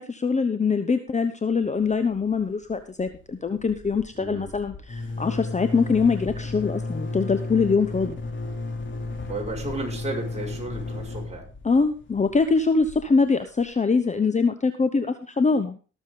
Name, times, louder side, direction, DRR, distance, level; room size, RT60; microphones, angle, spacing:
voice 1, 0.0-8.2 11.6-15.8, left 4 dB, 25° left, 9 dB, 1.0 m, -23 dB
sound 1, 1.8-2.3 2.6-2.7 3.0-13.7, left 3 dB, 40° left, 3.0 m, -34 dB
voice 2, 4.1-4.5 9.3-11.5, right 2 dB, 20° right, -1 dB, 5.4 m, -33 dB
19.0 x 7.3 x 3.8 m, 0.34 s
cardioid pair, 90°, 30 cm